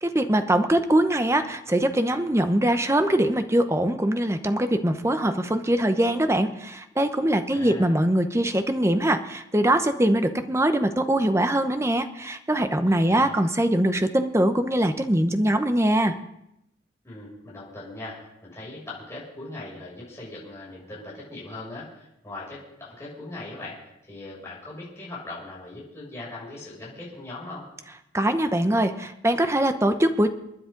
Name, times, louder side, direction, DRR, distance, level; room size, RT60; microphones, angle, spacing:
voice 1, 0.0-16.1 28.1-30.3, right 1 dB, 15° right, 8 dB, 0.9 m, -22 dB
voice 2, 7.5-7.9 12.8-13.4 17.0-23.8 24.1-27.7, left 2 dB, 15° left, -7 dB, 7.0 m, -40 dB
28.5 x 10.0 x 3.9 m, 0.84 s
head